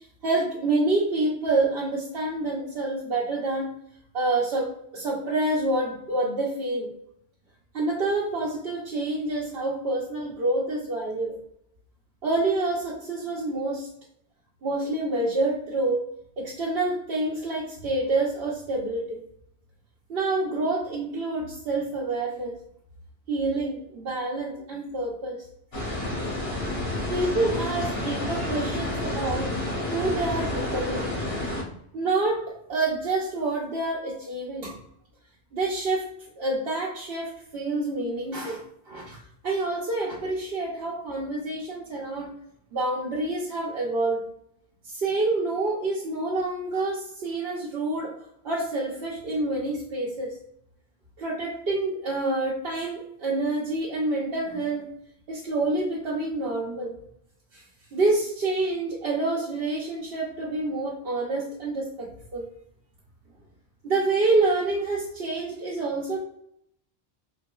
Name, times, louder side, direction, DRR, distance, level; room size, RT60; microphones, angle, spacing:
voice 1, 0.0-3.7 4.1-6.9 7.7-11.4 12.2-13.9 14.6-16.0 16.4-19.2 20.1-22.5 23.3-25.4 27.1-29.5 29.9-31.1 31.9-32.4 32.7-34.8 35.5-36.1 36.4-39.2 39.4-42.3 42.7-44.2 44.8-48.1 48.4-50.3 51.2-54.9 55.3-56.9 57.5-57.6 57.9-62.4 63.8-66.2, right 2 dB, 70° right, -5 dB, 1.0 m, -27 dB
sound 1, 25.7-31.6, left 1 dB, 70° left, 1.4 m, -29 dB
3.9 x 2.8 x 2.3 m, 0.71 s
omnidirectional pair, 1.1 m